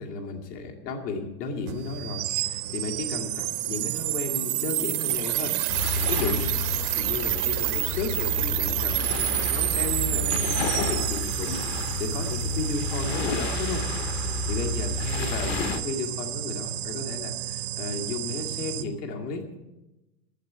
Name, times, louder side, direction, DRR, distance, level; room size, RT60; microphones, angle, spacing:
voice 1, 0.0-5.6 6.1-6.6 6.9-13.9 14.2-19.6, left 4 dB, 70° left, 1 dB, 2.4 m, -33 dB
sound 1, 1.7-18.8, right 16 dB, 35° right, 0.5 m, -29 dB
sound 2, 5.7-15.8, left 3 dB, 40° left, 1.0 m, -31 dB
11.5 x 8.1 x 9.6 m, 1.0 s
supercardioid pair, 160°, 50 cm